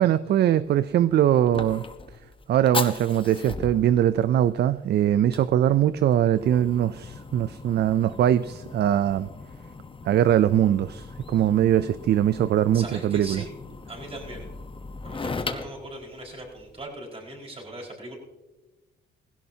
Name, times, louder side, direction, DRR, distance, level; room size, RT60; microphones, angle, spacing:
voice 1, 0.0-1.8 2.5-9.3 10.0-13.4, right 11 dB, 55° right, 15 dB, 0.4 m, -22 dB
Fire, 0.6-16.8, left 4 dB, 25° left, 1.0 m, -38 dB
voice 2, 12.7-13.5 13.9-14.5 15.0-18.2, right 1 dB, 30° right, -1 dB, 4.9 m, -39 dB
16.5 x 16.5 x 2.8 m, 1.1 s
cardioid pair, 90°, 20 cm